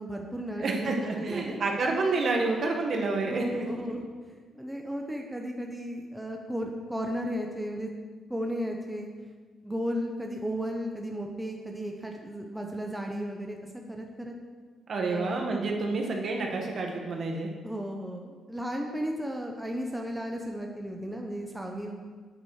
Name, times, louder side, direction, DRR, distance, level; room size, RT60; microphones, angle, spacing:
voice 1, 0.0-0.9 1.2-1.6 3.3-4.0 4.5-7.9 8.3-9.1 9.6-13.6 13.9-14.3 15.0-15.5 17.6-21.9, equal, 5° right, 1 dB, 1.0 m, -34 dB
voice 2, 0.6-4.0 14.9-17.5 21.8-21.9, right 3 dB, 50° right, 1 dB, 1.7 m, -29 dB
8.8 x 8.7 x 5.0 m, 1.5 s
cardioid pair, 105°, 0 cm